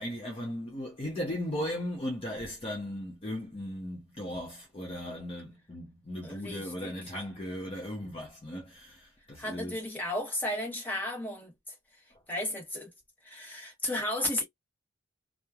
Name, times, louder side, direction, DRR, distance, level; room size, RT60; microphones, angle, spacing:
voice 1, 0.0-9.7, left 1 dB, 30° left, 0.7 m, -37 dB
voice 2, 6.2-7.1 9.4-11.5 12.3-12.9 13.2-14.4, left 1 dB, 10° left, 1.1 m, -34 dB
3.0 x 2.0 x 2.3 m
head